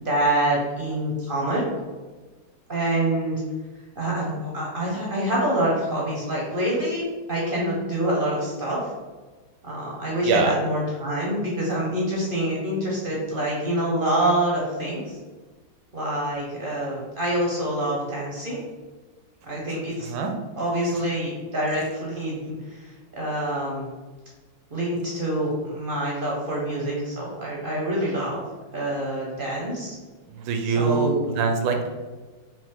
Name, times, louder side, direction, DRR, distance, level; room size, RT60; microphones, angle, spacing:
voice 1, 0.0-1.7 2.7-3.4 4.0-7.0 7.3-8.9 9.6-15.2 15.9-18.6 19.5-20.1 20.6-23.9 24.7-28.4 28.7-30.0 30.7-31.3, right 1 dB, 50° right, -4 dB, 0.6 m, -26 dB
voice 2, 10.2-10.6 13.1-13.2 20.0-20.3 30.3-31.9, right 4 dB, 75° right, 5 dB, 1.3 m, -24 dB
5.0 x 2.8 x 3.5 m, 1.3 s
omnidirectional pair, 2.1 m